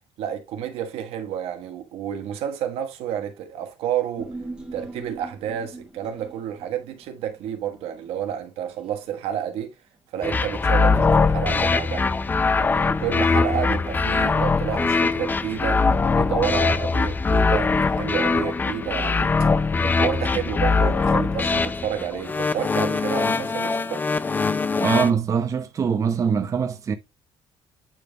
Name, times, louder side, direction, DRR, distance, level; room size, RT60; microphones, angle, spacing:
voice 1, 0.2-4.4 4.7-9.8 10.1-12.1 12.6-19.3 19.8-24.0, right 9 dB, 80° right, 1.3 m, -30 dB
Human voice, 4.2-8.8 9.1-9.2, right 2 dB, 10° right, 1.4 m, -41 dB
sound 1, 10.2-25.1, left 4 dB, 20° left, 0.5 m, -22 dB
voice 2, 24.8-26.9, right 6 dB, 35° right, 0.7 m, -23 dB
9.0 x 3.4 x 3.8 m
cardioid pair, 135°, 10 cm